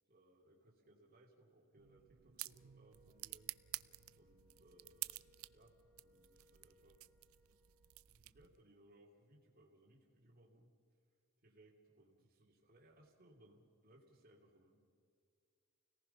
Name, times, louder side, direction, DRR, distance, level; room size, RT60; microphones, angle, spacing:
voice 1, 0.1-3.5 4.2-7.0 8.1-10.7 11.4-14.9, right 1 dB, 45° right, -4 dB, 2.9 m, -67 dB
sound 1, 1.8-8.7, right 18 dB, 70° right, 0.4 m, -51 dB
Wind instrument woodwind instrument, 2.4-8.0, left 2 dB, 15° right, 4.2 m, -73 dB
29.0 x 18.5 x 5.7 m, 2.3 s
head